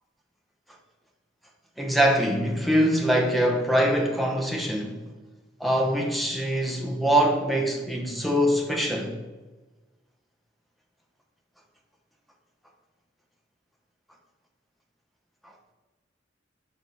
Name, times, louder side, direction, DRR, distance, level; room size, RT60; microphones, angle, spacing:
voice 1, 1.8-5.0 5.6-9.1, equal, ahead, 0.8 m, -23 dB
6.6 x 3.7 x 5.3 m
head